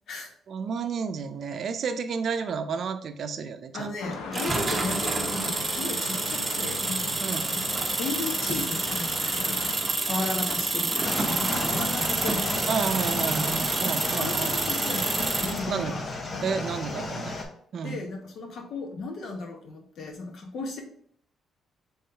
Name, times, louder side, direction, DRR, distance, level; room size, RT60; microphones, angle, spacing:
voice 1, 0.5-4.0 7.2-7.5 12.7-14.6 15.7-16.1 16.4-17.3 17.7-18.0, right 6 dB, 60° right, 10 dB, 0.5 m, -31 dB
voice 2, 3.7-7.6 8.0-12.6 14.2-16.0 17.8-20.8, left 3 dB, 65° left, 3 dB, 1.1 m, -35 dB
sound 1, 4.0-9.8, left 4 dB, 90° left, 0.6 m, -39 dB
sound 2, 4.3-15.6, right 3 dB, 25° right, 0.7 m, -28 dB
sound 3, 11.0-17.5, left 2 dB, 40° left, 0.9 m, -33 dB
3.8 x 3.1 x 4.3 m, 0.62 s
cardioid pair, 90°, 0 cm